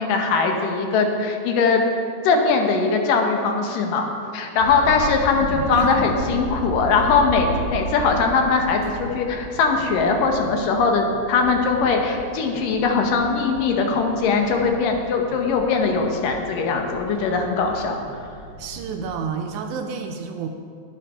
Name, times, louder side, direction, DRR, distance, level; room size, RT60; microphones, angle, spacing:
voice 1, 0.0-1.8 2.2-4.1 4.3-18.0, left 4 dB, 75° left, 3 dB, 2.5 m, -21 dB
sound 1, 4.6-19.0, right 1 dB, 40° left, 3.4 m, -35 dB
voice 2, 5.4-6.1 6.6-6.7 18.6-20.5, right 5 dB, 80° right, 4 dB, 1.7 m, -30 dB
10.5 x 7.3 x 5.5 m, 2.4 s
omnidirectional pair, 4.0 m